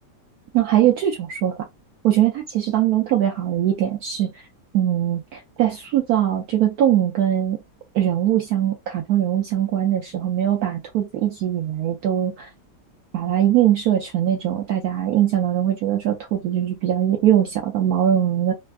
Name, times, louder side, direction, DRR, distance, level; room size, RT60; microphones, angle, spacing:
voice 1, 0.5-1.5 2.0-4.3 4.7-7.6 7.9-12.5 13.1-18.5, right 11 dB, 70° right, 0.9 m, -21 dB
3.3 x 2.2 x 2.4 m
omnidirectional pair, 2.0 m